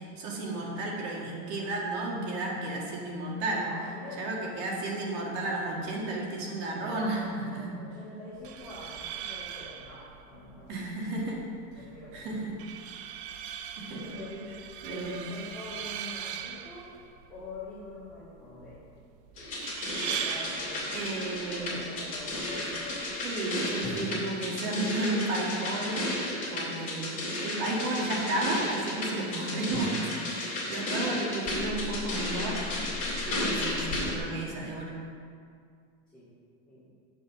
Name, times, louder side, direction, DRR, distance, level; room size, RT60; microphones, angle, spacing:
voice 1, 0.0-3.7 4.2-7.8 10.7-11.4 11.8-11.9 12.1-12.6 13.8-14.0 14.8-15.2 20.9-21.8 23.2-30.0 30.3-32.9 33.3-35.0, right 2 dB, 50° right, -3 dB, 1.9 m, -33 dB
voice 2, 3.5-4.2 6.8-10.7 11.7-12.3 13.9-14.5 14.9-16.9 17.3-18.8 19.8-21.0 21.5-23.0 29.3-29.7 36.1-36.3 36.7-36.9, left 2 dB, 5° left, -13 dB, 2.0 m, -44 dB
sound 1, 8.3-23.3, right 9 dB, 70° right, 0.6 m, -41 dB
sound 2, 18.4-20.9 23.8-27.2 27.9-28.0 29.7-29.8, left 1 dB, 55° left, 1.7 m, -46 dB
sound 3, 19.4-34.2, left 1 dB, 25° left, 2.4 m, -33 dB
7.4 x 5.3 x 7.3 m, 2.2 s
cardioid pair, 175°, 35 cm